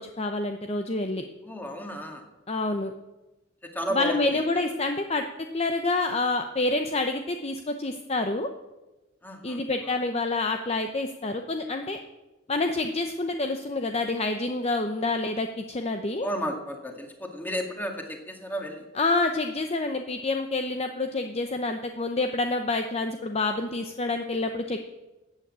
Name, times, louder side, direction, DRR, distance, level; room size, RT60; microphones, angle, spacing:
voice 1, 0.0-1.2 2.5-2.9 3.9-5.3 5.5-8.5 9.4-12.0 12.5-16.3 19.0-24.8, left 2 dB, 30° left, 6 dB, 0.7 m, -27 dB
voice 2, 1.4-2.3 3.7-4.4 9.2-10.0 16.2-18.8, equal, 10° left, 3 dB, 2.1 m, -33 dB
15.0 x 8.7 x 8.7 m, 1.1 s
head